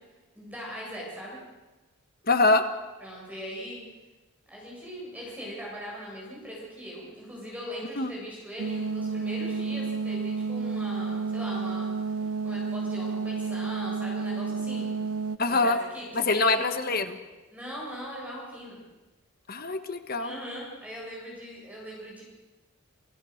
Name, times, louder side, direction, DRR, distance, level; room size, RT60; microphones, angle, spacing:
voice 1, 0.4-1.4 3.0-3.8 4.5-15.1 15.5-16.6 17.5-18.8 20.2-22.2, equal, 5° right, -4 dB, 7.3 m, -40 dB
voice 2, 2.3-2.6 8.0-8.1 15.4-15.8 16.1-17.2 19.5-20.3, left 3 dB, 45° left, 8 dB, 1.5 m, -24 dB
sound 1, 8.6-15.4, right 4 dB, 85° right, 0.6 m, -31 dB
28.0 x 16.0 x 6.6 m, 1.2 s
head